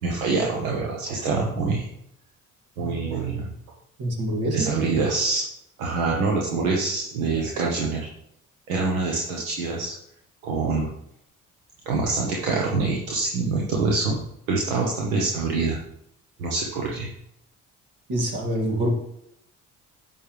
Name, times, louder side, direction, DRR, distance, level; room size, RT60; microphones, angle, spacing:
voice 1, 0.0-1.9 2.8-3.6 4.5-5.4 5.8-8.1 8.7-9.9 10.4-10.9 11.9-14.2 14.5-15.8 16.4-17.1, right 3 dB, 90° right, -2 dB, 1.0 m, -25 dB
voice 2, 4.0-4.7 18.1-19.0, equal, 65° right, 0 dB, 2.5 m, -25 dB
11.0 x 7.2 x 3.3 m, 0.77 s
hypercardioid pair, 45°, 41 cm